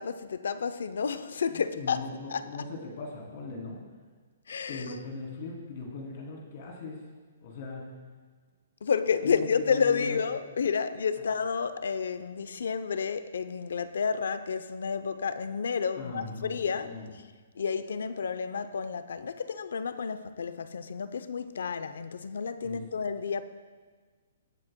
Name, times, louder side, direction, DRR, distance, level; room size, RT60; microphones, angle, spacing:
voice 1, 0.0-2.0 2.3-2.4 4.5-4.8 8.8-16.9 17.6-23.4, left 6 dB, 75° left, 0.6 m, -30 dB
voice 2, 1.5-3.8 4.7-7.1 7.4-8.0 9.2-10.4 11.2-11.3 16.0-17.1 22.6-22.8, left 3 dB, 45° left, 2.8 m, -40 dB
19.0 x 7.5 x 2.2 m
hypercardioid pair, 165°, 0 cm